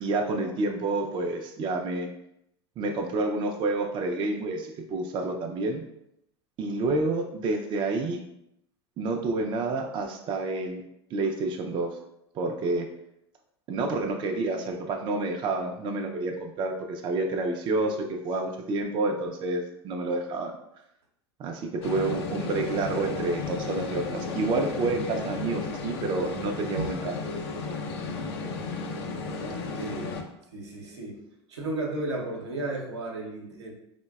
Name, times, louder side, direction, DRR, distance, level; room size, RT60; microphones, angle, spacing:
voice 1, 0.0-2.1 2.8-5.8 6.6-8.2 9.0-10.8 11.1-12.0 12.3-12.9 13.7-20.5 21.4-27.1, right 3 dB, 35° right, 3 dB, 0.4 m, -29 dB
sound 1, 21.8-30.2, left 4 dB, 70° left, 0.5 m, -34 dB
voice 2, 29.7-30.1 30.5-31.2 31.5-33.7, right 2 dB, 85° right, -1 dB, 0.7 m, -33 dB
3.8 x 2.1 x 2.2 m, 0.80 s
hypercardioid pair, 80°, 14 cm